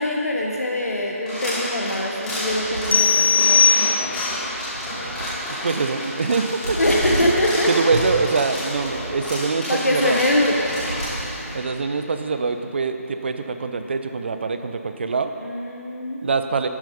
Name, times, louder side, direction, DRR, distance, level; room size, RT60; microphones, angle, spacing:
voice 1, 0.0-4.2 6.8-7.7 9.7-10.6 15.4-16.2, left 1 dB, 80° left, -1 dB, 1.5 m, -23 dB
sound 1, 1.3-11.3, equal, 10° left, 3.0 m, -30 dB
sound 2, 2.5-5.6 5.9-7.6 7.9-11.6, right 1 dB, 65° right, 2.3 m, -33 dB
sound 3, 2.9-4.4, left 5 dB, 45° left, 0.7 m, -18 dB
voice 2, 5.6-6.8 7.1-7.3 7.7-10.2 11.5-15.3 16.2-16.7, right 4 dB, 45° right, 8 dB, 0.7 m, -24 dB
12.0 x 9.1 x 5.5 m, 2.9 s
figure-of-eight pair, 155°, 8 cm